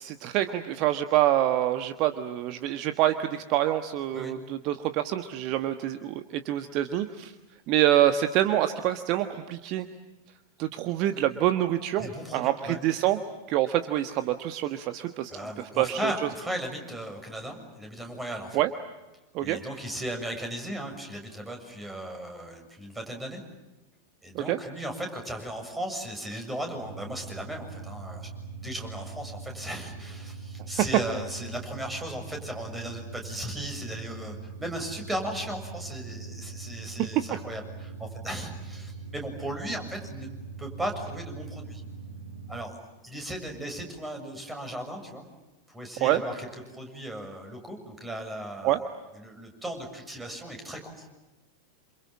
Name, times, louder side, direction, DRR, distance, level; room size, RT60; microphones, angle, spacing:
voice 1, 0.0-7.3 7.7-9.9 10.6-13.2 13.5-15.3 15.6-16.1 18.5-18.7 19.3-19.6 24.3-24.6 30.8-30.9 37.0-37.1 46.0-46.2 48.6-48.8, right 13 dB, 40° right, 9 dB, 1.3 m, -26 dB
voice 2, 12.0-12.8 15.3-18.6 19.4-23.4 24.2-28.3 28.6-40.3 40.6-41.8 42.5-42.8 43.0-45.2 45.7-46.5 46.7-48.9 49.2-51.1, right 1 dB, 10° right, 4 dB, 7.0 m, -36 dB
sound 1, 26.7-42.8, right 4 dB, 75° right, 2.3 m, -42 dB
28.5 x 28.0 x 7.5 m, 1.1 s
figure-of-eight pair, 90°, 0 cm